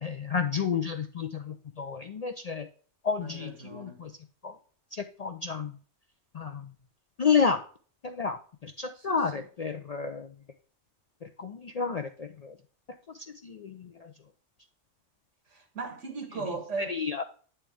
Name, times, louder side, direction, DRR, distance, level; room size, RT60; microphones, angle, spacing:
voice 1, 0.0-2.7 3.0-4.1 4.4-4.5 5.2-5.7 6.3-6.6 7.2-7.6 8.0-8.4 8.6-10.3 11.4-12.5 13.4-13.8 16.9-17.2, left 6 dB, 55° left, 0.4 m, -30 dB
voice 2, 3.2-4.0 8.9-9.5 15.5-17.0, right 3 dB, 85° right, 1.9 m, -38 dB
8.8 x 4.4 x 3.5 m
omnidirectional pair, 1.2 m